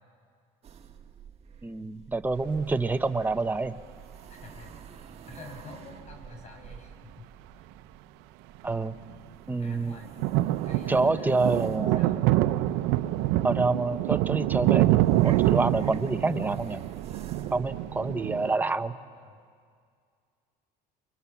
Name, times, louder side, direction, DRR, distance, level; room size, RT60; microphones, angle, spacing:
sound 1, 0.6-18.2, right 7 dB, 35° right, 1.6 m, -50 dB
voice 1, 1.6-3.8 8.6-8.9 9.5-10.0 10.9-12.0 13.4-16.8 17.5-18.9, right 3 dB, 10° right, 8 dB, 0.9 m, -27 dB
voice 2, 4.3-4.9 5.3-7.3 7.5-7.6 9.6-10.1 10.6-11.6 12.0-12.2 18.9-19.4, left 3 dB, 45° left, 3 dB, 6.6 m, -47 dB
sound 2, 8.6-8.8 9.1-9.2 10.1-18.5, right 16 dB, 85° right, 0.7 m, -26 dB
29.0 x 24.0 x 7.2 m, 2.1 s
cardioid pair, 115°, 17 cm